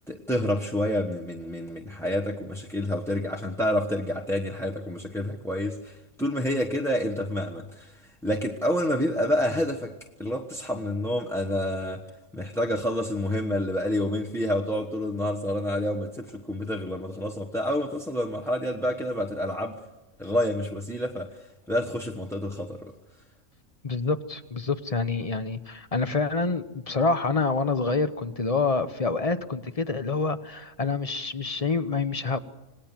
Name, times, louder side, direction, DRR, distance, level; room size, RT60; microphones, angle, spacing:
voice 1, 0.1-9.9 10.2-12.0 12.3-19.8 20.2-22.9, left 1 dB, ahead, -1 dB, 1.1 m, -28 dB
voice 2, 23.8-32.4, left 4 dB, 30° left, 11 dB, 0.9 m, -27 dB
27.0 x 19.0 x 7.5 m, 1.0 s
omnidirectional pair, 1.5 m